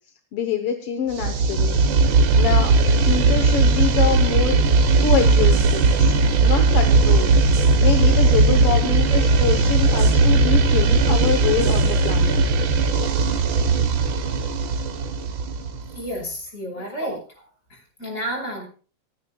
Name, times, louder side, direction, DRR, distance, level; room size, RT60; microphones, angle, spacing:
voice 1, 0.3-1.8 2.4-4.6 5.0-6.1 6.4-7.3 7.8-12.4 16.8-16.9, left 8 dB, 60° left, 5 dB, 1.6 m, -25 dB
sound 1, 1.1-15.9, right 3 dB, 90° right, 1.0 m, -18 dB
voice 2, 15.9-17.2 17.7-18.6, equal, 20° left, 1 dB, 5.7 m, -30 dB
28.5 x 9.6 x 2.3 m, 0.37 s
omnidirectional pair, 3.6 m